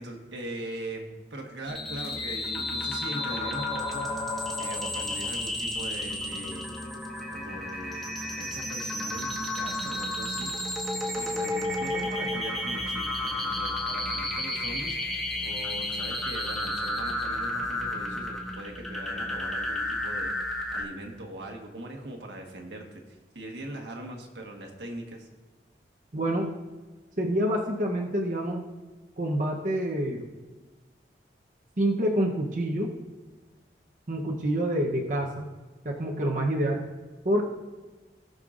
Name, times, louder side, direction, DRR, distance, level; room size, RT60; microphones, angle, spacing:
voice 1, 0.0-4.1 4.6-6.6 7.3-10.5 11.1-15.0 15.4-20.3 20.7-25.3, right 1 dB, 85° right, 2 dB, 1.4 m, -40 dB
sound 1, 1.7-20.8, left 1 dB, ahead, 1.4 m, -32 dB
sound 2, 2.0-18.2, equal, 80° left, 1.6 m, -50 dB
voice 2, 26.1-26.5 27.2-28.6 29.2-30.3 31.8-32.9 34.1-35.5 35.8-36.8 37.2-37.4, right 1 dB, 45° right, 0 dB, 0.8 m, -27 dB
18.0 x 6.5 x 2.5 m, 1.3 s
head